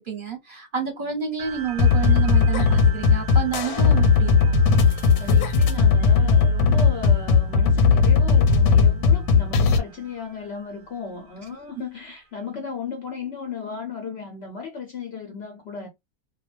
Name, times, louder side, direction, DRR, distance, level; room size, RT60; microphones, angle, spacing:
voice 1, 0.0-4.6, right 6 dB, 45° right, 0.9 m, -29 dB
sound 1, 1.4-12.3, right 8 dB, 80° right, 0.4 m, -43 dB
sound 2, 1.8-9.8, left 5 dB, 85° left, 1.1 m, -18 dB
voice 2, 5.2-15.9, left 5 dB, 65° left, 0.7 m, -35 dB
2.3 x 2.2 x 3.1 m
omnidirectional pair, 1.6 m